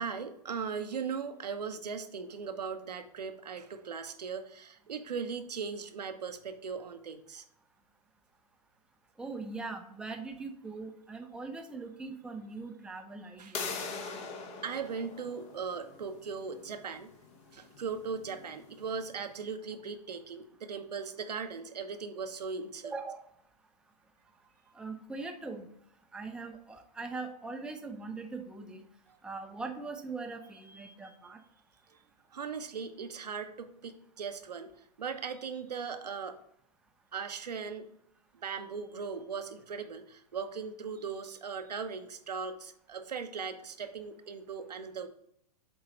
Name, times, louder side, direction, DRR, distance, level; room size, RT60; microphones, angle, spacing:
voice 1, 0.0-7.4 13.4-13.6 14.6-17.1 17.5-22.9 30.7-31.2 32.3-34.7 35.0-36.4 37.1-37.8 38.3-45.1, right 5 dB, 80° right, 7 dB, 0.8 m, -38 dB
voice 2, 9.2-13.7 22.8-23.2 24.8-25.6 26.1-28.9 29.2-31.4, right 3 dB, 5° right, 4 dB, 0.6 m, -41 dB
sound 1, 13.5-19.1, left 4 dB, 30° left, 1.0 m, -43 dB
7.8 x 3.9 x 4.2 m, 0.71 s
hypercardioid pair, 110°, 21 cm